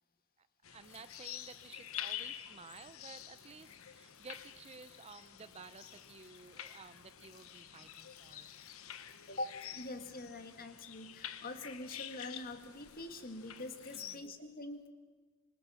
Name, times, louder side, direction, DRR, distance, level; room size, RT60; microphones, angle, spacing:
voice 1, 0.4-8.6 13.9-14.4, right 4 dB, 30° right, 13 dB, 0.7 m, -54 dB
sound 1, 0.6-14.2, left 10 dB, 75° left, 1.1 m, -48 dB
sound 2, 0.8-14.4, left 5 dB, 25° left, 2.3 m, -69 dB
voice 2, 9.3-14.9, left 2 dB, 45° left, 7 dB, 1.9 m, -44 dB
25.0 x 23.5 x 7.1 m, 1.4 s
head